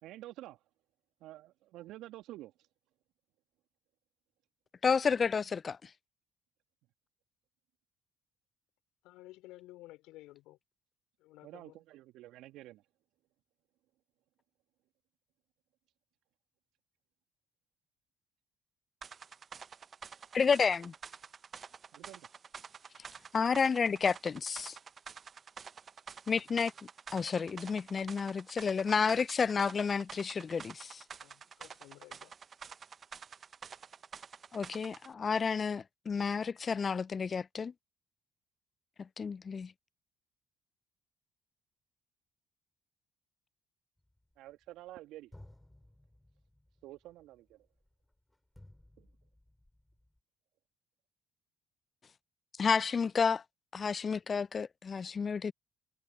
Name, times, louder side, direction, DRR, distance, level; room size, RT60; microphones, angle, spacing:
voice 1, 0.0-0.6 1.2-2.5 11.4-12.8 21.9-22.3 44.4-45.3 46.8-47.6 49.0-49.1, right 15 dB, 70° right, 2.2 m, -49 dB
voice 2, 4.8-5.9 20.3-20.9 23.3-24.8 26.3-26.7 27.1-31.0 34.5-37.7 39.0-39.7 52.6-53.4 53.7-55.5, left 5 dB, 40° left, 0.5 m, -31 dB
voice 3, 9.0-10.6 11.2-11.8 31.2-32.3, left 18 dB, 70° left, 3.2 m, -54 dB
sound 1, 19.0-35.1, right 6 dB, 45° right, 1.0 m, -49 dB
sound 2, 44.0-44.9 45.3-50.2, left 1 dB, 10° left, 5.4 m, -59 dB
hypercardioid pair, 50°, 0 cm